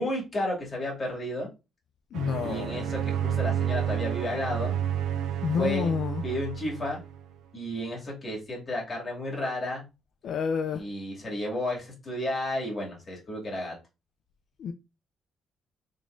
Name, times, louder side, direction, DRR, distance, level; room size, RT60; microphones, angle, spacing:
voice 1, 0.0-1.5 2.4-4.7 5.6-5.9 6.2-7.0 7.5-9.8 10.7-13.7, left 1 dB, 35° left, 2.3 m, -32 dB
voice 2, 2.1-2.8 5.4-6.2 10.2-10.8 14.6-14.7, left 6 dB, 65° left, 0.4 m, -29 dB
sound 1, 2.1-7.2, right 9 dB, 90° right, 0.4 m, -30 dB
3.7 x 3.5 x 2.5 m
cardioid pair, 90°, 0 cm